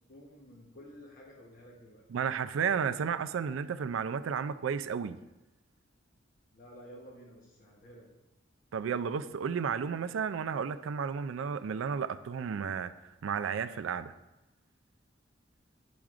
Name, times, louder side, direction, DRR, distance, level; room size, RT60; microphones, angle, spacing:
voice 1, 0.1-2.0 6.5-8.1, equal, 45° left, 1.0 m, -52 dB
voice 2, 2.1-5.2 8.7-12.9 13.2-14.1, right 6 dB, 80° right, 0.4 m, -32 dB
10.5 x 6.0 x 2.4 m
head